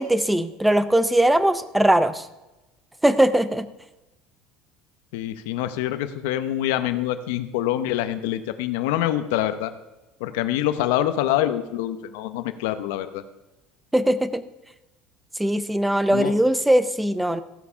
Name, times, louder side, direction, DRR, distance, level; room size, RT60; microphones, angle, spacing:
voice 1, 0.0-2.3 3.0-3.7 13.9-14.4 15.4-17.4, right 1 dB, 5° right, 13 dB, 0.5 m, -20 dB
voice 2, 5.1-9.7 10.2-13.2 16.1-16.4, left 12 dB, 90° left, 10 dB, 0.8 m, -25 dB
15.5 x 7.1 x 5.7 m, 1.0 s
cardioid pair, 170°, 0 cm